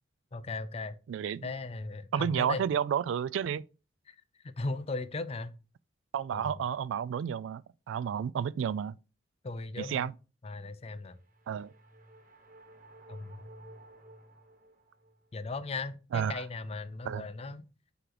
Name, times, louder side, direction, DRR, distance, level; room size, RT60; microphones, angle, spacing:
voice 1, 0.3-1.0 1.4-2.7 4.1-4.2 4.4-5.5 6.3-6.6 9.4-10.1 10.4-11.2 13.1-13.4 15.3-17.6, left 3 dB, 35° left, 0.5 m, -37 dB
voice 2, 1.1-1.4 2.1-3.6 6.1-9.0 9.8-10.1 11.5-11.7 16.1-16.4 17.1-17.2, right 8 dB, 90° right, 0.3 m, -31 dB
sound 1, 11.0-15.3, right 1 dB, 45° right, 1.4 m, -54 dB
8.1 x 3.0 x 3.8 m
head